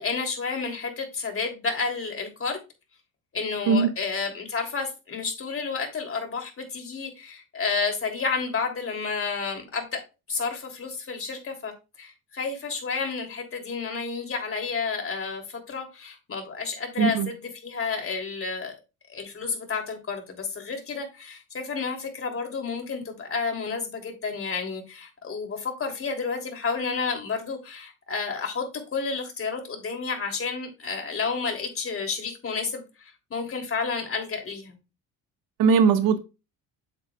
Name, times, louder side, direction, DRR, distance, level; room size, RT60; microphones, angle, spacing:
voice 1, 0.0-2.6 3.3-10.0 10.3-11.7 12.0-18.7 19.1-28.7 28.9-34.8, left 4 dB, 35° left, 3.2 m, -31 dB
voice 2, 17.0-17.3 35.6-36.2, right 5 dB, 75° right, 1.5 m, -19 dB
8.7 x 7.5 x 2.4 m
cardioid pair, 95°, 36 cm